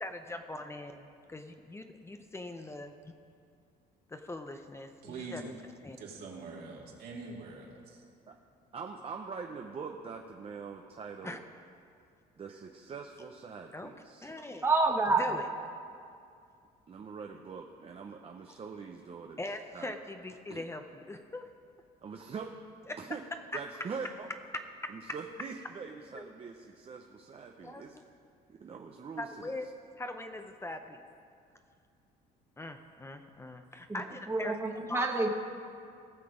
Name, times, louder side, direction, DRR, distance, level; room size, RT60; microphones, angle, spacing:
voice 1, 0.0-0.9 1.3-2.9 4.1-5.4 5.8-6.0 11.2-11.4 13.7-13.9 14.2-14.7 15.1-15.5 19.4-21.5 22.9-23.0 23.5-23.6 24.8-24.9 26.1-26.3 27.6-28.0 29.2-29.7 30.0-31.0 32.6-34.5 34.9-35.0, left 2 dB, 15° left, 6 dB, 0.6 m, -41 dB
voice 2, 5.0-5.4 6.0-8.0, right 4 dB, 65° right, -3 dB, 2.6 m, -44 dB
voice 3, 8.7-11.4 12.4-14.3 16.9-19.4 19.7-19.9 20.5-20.6 22.0-22.5 23.0-23.2 23.5-24.3 24.9-28.0 28.5-29.3, right 5 dB, 35° right, 3 dB, 0.7 m, -43 dB
voice 4, 14.6-15.4 33.9-34.0 34.3-35.3, right 3 dB, 15° right, 2 dB, 1.0 m, -28 dB
18.0 x 6.8 x 5.0 m, 2.4 s
cardioid pair, 110°, 17 cm